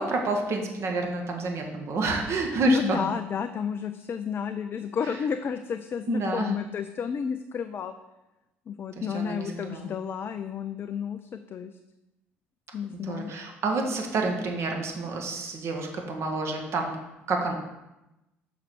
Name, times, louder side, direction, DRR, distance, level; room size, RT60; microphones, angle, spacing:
voice 1, 0.0-3.0 6.1-6.5 8.9-9.9 12.9-16.9 17.3-17.5, right 3 dB, 45° right, 2 dB, 1.2 m, -29 dB
voice 2, 2.6-7.9 8.7-11.8 12.7-13.3, left 7 dB, 35° left, 8 dB, 0.4 m, -31 dB
6.2 x 4.9 x 4.4 m, 0.96 s
figure-of-eight pair, 55°, 6 cm